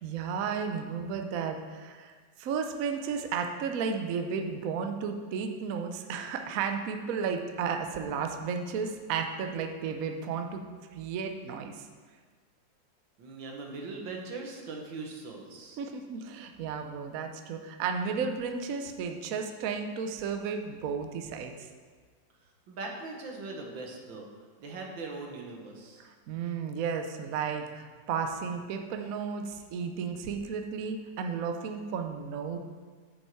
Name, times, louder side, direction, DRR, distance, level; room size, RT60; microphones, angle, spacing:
voice 1, 0.0-2.1 2.4-10.6 10.9-11.9 15.8-21.7 26.0-32.6, right 6 dB, 60° right, 5 dB, 0.9 m, -33 dB
voice 2, 13.2-15.8 22.7-24.3 24.6-26.0, right 3 dB, 85° right, 1 dB, 1.9 m, -40 dB
8.0 x 7.1 x 4.6 m, 1.5 s
omnidirectional pair, 2.0 m